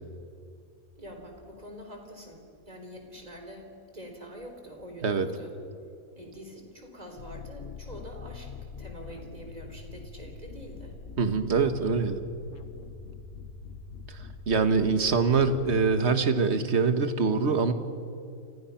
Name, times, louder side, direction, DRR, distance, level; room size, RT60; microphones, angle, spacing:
voice 1, 1.0-5.5 6.2-10.9, equal, 25° right, 3 dB, 4.1 m, -45 dB
sound 1, 7.2-15.9, left 4 dB, 60° left, 1.7 m, -44 dB
voice 2, 11.2-12.2 14.1-14.2 14.5-17.7, right 5 dB, 50° right, 8 dB, 1.6 m, -24 dB
29.5 x 26.0 x 5.9 m, 2.4 s
omnidirectional pair, 1.5 m